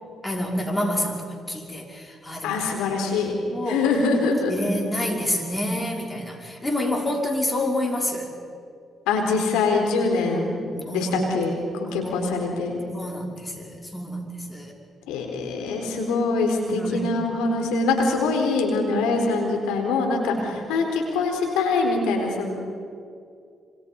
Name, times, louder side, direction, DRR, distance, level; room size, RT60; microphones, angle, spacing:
voice 1, 0.2-2.6 3.4-3.8 4.5-8.3 10.7-11.1 11.9-12.3 12.9-14.7 16.7-17.2 19.1-19.2 20.4-20.6, left 1 dB, 15° left, 1 dB, 5.6 m, -28 dB
voice 2, 2.4-3.3 3.7-4.5 9.1-10.6 10.9-12.8 15.1-22.5, left 3 dB, 85° left, 2 dB, 4.2 m, -24 dB
26.5 x 26.0 x 5.5 m, 2.3 s
supercardioid pair, 55°, 0 cm